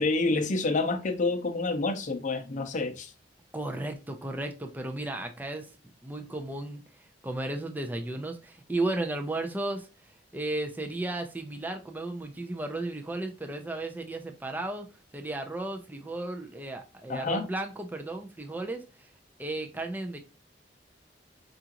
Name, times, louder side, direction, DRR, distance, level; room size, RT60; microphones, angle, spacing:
voice 1, 0.0-3.1 17.1-17.5, left 3 dB, 45° left, 0.6 m, -28 dB
voice 2, 3.5-5.7 6.0-9.9 10.3-14.9 15.1-19.1 19.4-20.2, right 2 dB, 10° right, 0.4 m, -34 dB
4.8 x 2.4 x 2.8 m
head